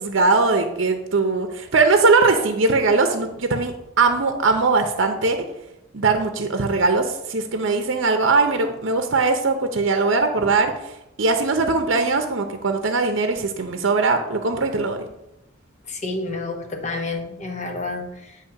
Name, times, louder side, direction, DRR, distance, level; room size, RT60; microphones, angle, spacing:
voice 1, 0.0-5.4 5.9-15.1, right 3 dB, 65° right, 6 dB, 0.7 m, -20 dB
voice 2, 15.9-18.4, left 3 dB, 35° left, 3 dB, 1.0 m, -29 dB
8.8 x 3.2 x 5.7 m, 0.87 s
head